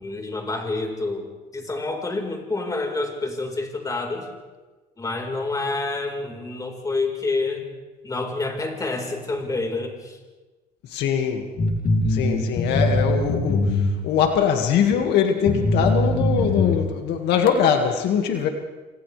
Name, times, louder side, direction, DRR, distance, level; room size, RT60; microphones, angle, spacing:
voice 1, 0.0-4.3 5.0-7.7 8.0-10.2, left 3 dB, 20° left, 2 dB, 4.5 m, -28 dB
voice 2, 10.8-11.5 12.1-18.5, left 7 dB, 80° left, 4 dB, 2.0 m, -22 dB
sound 1, 11.6-14.2 14.9-15.0 15.5-16.8, left 2 dB, 55° left, 3.2 m, -21 dB
28.5 x 27.0 x 3.4 m, 1.2 s
cardioid pair, 110°, 17 cm